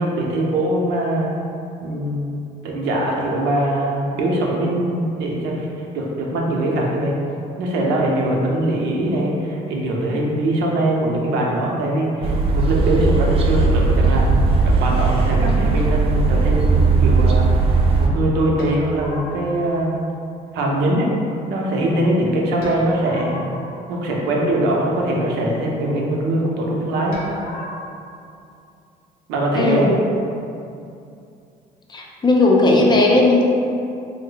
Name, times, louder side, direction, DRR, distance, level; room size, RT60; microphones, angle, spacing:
voice 1, 0.0-1.3 1.8-7.2 7.6-17.5 18.0-20.0 20.5-21.1 21.5-23.4 23.9-27.2 29.3-29.9, right 1 dB, 90° right, -2 dB, 0.6 m, -22 dB
sound 1, 12.2-18.1, right 4 dB, 35° right, 0.4 m, -17 dB
sound 2, 18.6-19.9 22.6-24.5 27.1-27.9, left 2 dB, 65° left, 0.7 m, -36 dB
voice 2, 29.5-30.0 31.9-33.4, left 2 dB, 25° left, -1 dB, 0.5 m, -16 dB
3.2 x 2.0 x 3.8 m, 2.6 s
cardioid pair, 110°, 17 cm